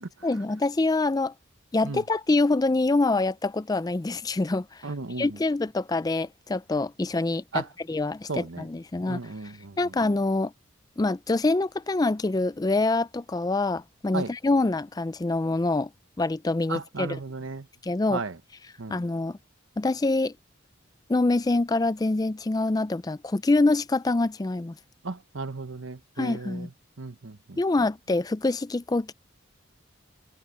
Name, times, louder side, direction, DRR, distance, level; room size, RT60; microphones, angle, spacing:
voice 1, 0.2-1.3 1.7-4.9 5.2-9.3 9.8-10.5 11.0-15.9 16.2-17.2 17.8-18.2 18.9-19.4 19.8-20.3 21.1-24.8 26.2-26.7 27.6-29.1, left 2 dB, 20° left, 0.4 m, -25 dB
voice 2, 4.8-5.3 7.5-7.6 8.3-8.7 9.1-9.8 14.1-14.3 16.7-17.7 18.1-18.4 18.8-19.0 25.0-26.7 27.0-27.6, right 3 dB, 70° right, 1.1 m, -34 dB
head